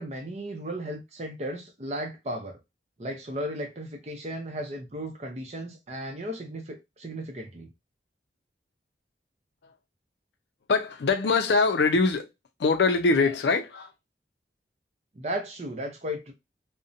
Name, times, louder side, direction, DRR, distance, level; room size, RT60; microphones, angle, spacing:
voice 1, 0.0-2.6 3.0-7.7 15.2-16.3, equal, 40° right, 0.6 m, -35 dB
voice 2, 10.7-12.3 12.6-13.9, left 4 dB, 75° left, 0.4 m, -23 dB
2.7 x 2.1 x 2.5 m
head